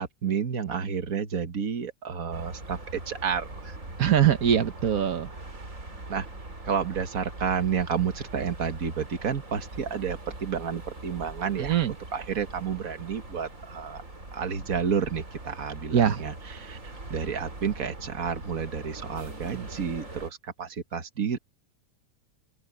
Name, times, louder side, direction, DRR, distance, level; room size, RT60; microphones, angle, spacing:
voice 1, 0.0-3.8 6.1-6.3 6.6-11.8 12.1-14.0 14.3-21.4, right 7 dB, 40° right, 1.2 m, -30 dB
sound 1, 2.3-20.3, right 2 dB, 25° right, 4.7 m, -42 dB
voice 2, 4.0-5.3 11.6-11.9 15.9-16.2, right 9 dB, 70° right, 0.8 m, -22 dB
open air
omnidirectional pair, 3.4 m